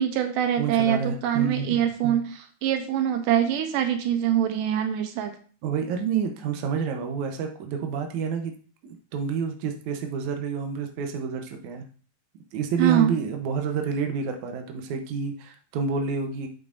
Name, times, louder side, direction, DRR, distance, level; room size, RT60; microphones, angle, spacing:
voice 1, 0.0-5.4 12.8-13.1, right 10 dB, 90° right, 7 dB, 2.5 m, -24 dB
voice 2, 0.6-2.2 5.6-8.5 8.8-11.8 12.5-16.5, right 6 dB, 70° right, 4 dB, 2.2 m, -29 dB
8.9 x 7.7 x 2.6 m, 0.41 s
omnidirectional pair, 3.7 m